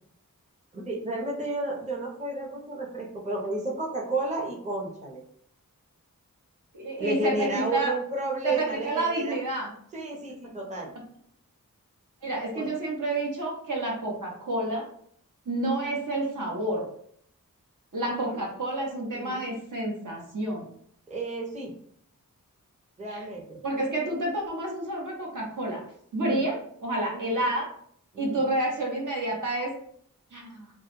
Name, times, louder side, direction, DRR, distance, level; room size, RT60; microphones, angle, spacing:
voice 1, 0.7-5.2 7.0-9.4 9.9-10.9 12.5-12.7 18.1-18.4 19.1-19.5 21.1-21.7 23.0-23.6 26.2-26.5 27.1-27.5 28.1-28.5, right 2 dB, 20° right, -1 dB, 0.7 m, -32 dB
voice 2, 6.7-7.9 8.4-9.7 12.2-14.8 15.5-16.8 17.9-20.7 23.1-23.2 23.6-25.8 26.1-27.7 28.2-29.7 30.3-30.7, right 1 dB, 65° right, -2 dB, 0.7 m, -29 dB
2.2 x 2.0 x 3.0 m, 0.65 s
cardioid pair, 40°, 34 cm